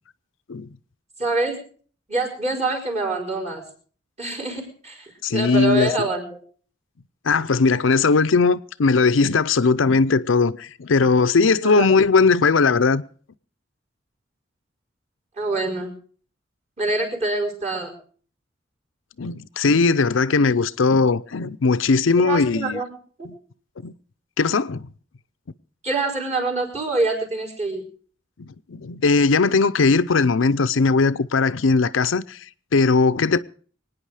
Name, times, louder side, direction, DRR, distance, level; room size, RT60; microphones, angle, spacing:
voice 1, 1.2-1.6 2.1-3.6 4.2-6.4 11.6-11.9 15.4-15.9 16.8-17.9 22.2-22.9 23.2-23.3 25.8-27.8, right 2 dB, 35° right, 4.8 m, -25 dB
voice 2, 5.2-5.9 7.2-13.0 19.2-22.8 23.2-23.3 23.8-23.9 24.4-24.9 28.4-32.5 32.7-33.4, left 4 dB, 80° left, 0.6 m, -19 dB
25.0 x 9.6 x 4.9 m
head